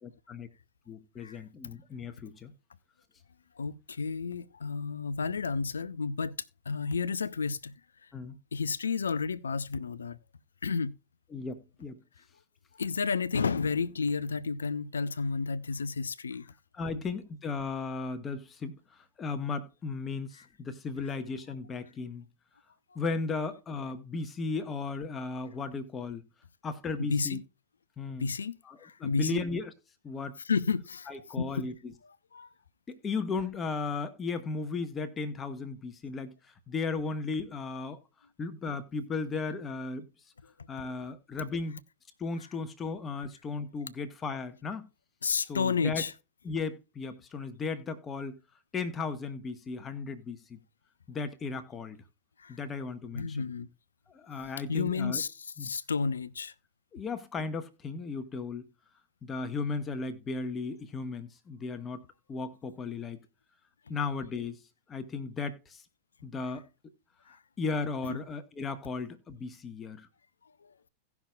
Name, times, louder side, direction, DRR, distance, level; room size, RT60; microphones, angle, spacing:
voice 1, 0.0-0.5 0.9-2.5 8.1-8.3 11.3-12.0 16.8-18.8 19.2-22.2 22.9-26.3 26.6-27.4 28.0-28.3 28.7-29.7 30.0-30.4 31.1-31.7 32.9-36.3 36.7-38.0 38.4-40.0 40.7-41.8 42.2-44.9 45.5-46.0 46.4-48.4 48.7-50.6 51.1-52.0 52.5-53.4 54.1-55.2 55.6-55.7 56.9-58.7 59.2-62.0 62.3-63.2 63.9-64.6 64.9-65.8 66.2-66.6 67.6-70.1, left 4 dB, 20° left, 1.1 m, -35 dB
voice 2, 3.6-6.3 6.7-7.7 8.5-10.2 10.6-10.9 12.8-16.5 27.0-27.4 28.2-29.4 30.4-31.7 32.3-32.5 45.2-46.1 52.4-52.6 53.1-53.7 54.7-56.5 67.3-67.4 68.1-68.2 70.6-70.9, left 5 dB, 70° left, 0.5 m, -31 dB
17.5 x 6.0 x 2.4 m
figure-of-eight pair, 90°, 0 cm